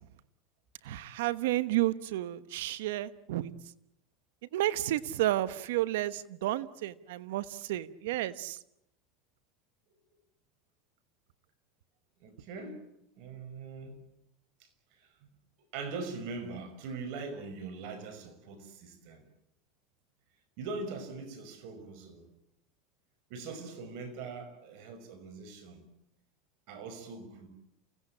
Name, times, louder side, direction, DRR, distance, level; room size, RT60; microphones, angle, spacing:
voice 1, 0.9-3.5 4.5-8.6, right 15 dB, 80° right, 1.1 m, -31 dB
voice 2, 12.2-12.9 13.2-14.0 14.6-14.7 15.0-15.3 15.7-19.2 20.6-22.3 23.3-25.8 26.7-27.5, right 4 dB, 65° right, 5.7 m, -42 dB
29.5 x 16.5 x 8.8 m
supercardioid pair, 110°, 0 cm